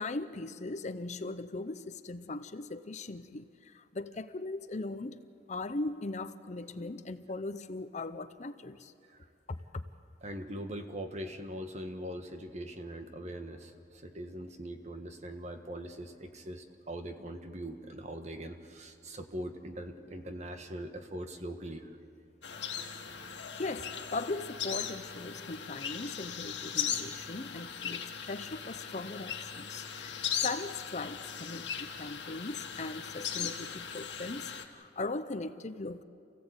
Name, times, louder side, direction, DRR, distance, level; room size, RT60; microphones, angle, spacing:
voice 1, 0.0-8.9 9.5-9.8 23.3-36.0, left 2 dB, 40° left, 12 dB, 0.7 m, -39 dB
voice 2, 10.2-21.9 32.0-32.1, right 1 dB, 40° right, 6 dB, 1.5 m, -42 dB
sound 1, 22.4-34.6, left 8 dB, 90° left, 1.8 m, -38 dB
28.0 x 16.5 x 8.1 m, 2.4 s
head